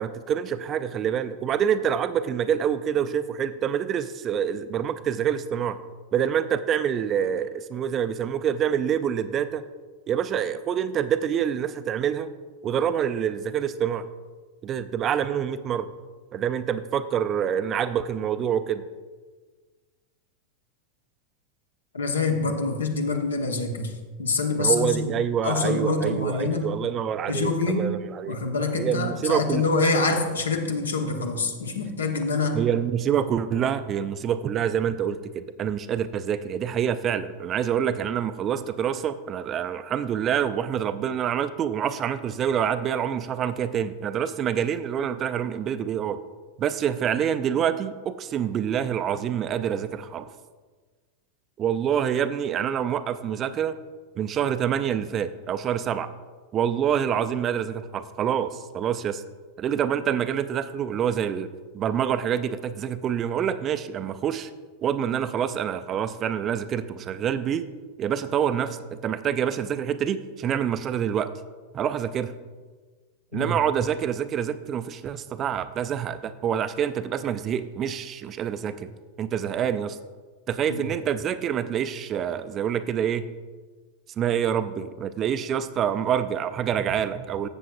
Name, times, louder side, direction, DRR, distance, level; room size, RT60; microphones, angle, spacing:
voice 1, 0.0-5.8 6.1-9.6 10.1-12.3 12.6-14.1 14.6-15.9 16.3-18.8 24.6-28.4 28.8-29.6 32.5-46.2 46.6-50.3 51.6-53.7 54.2-56.1 56.5-59.2 59.6-61.5 61.7-64.5 64.8-67.6 68.0-68.8 69.0-71.3 71.7-72.3 73.3-78.9 79.2-80.0 80.5-83.3 84.2-87.5, right 9 dB, 30° right, 12 dB, 0.4 m, -26 dB
voice 2, 21.9-23.9 24.2-25.1 25.4-26.7 27.3-28.0 28.3-32.6 73.3-73.6 80.7-80.9, left 3 dB, 70° left, 4 dB, 1.0 m, -25 dB
13.0 x 7.7 x 2.5 m, 1.4 s
figure-of-eight pair, 90°, 0 cm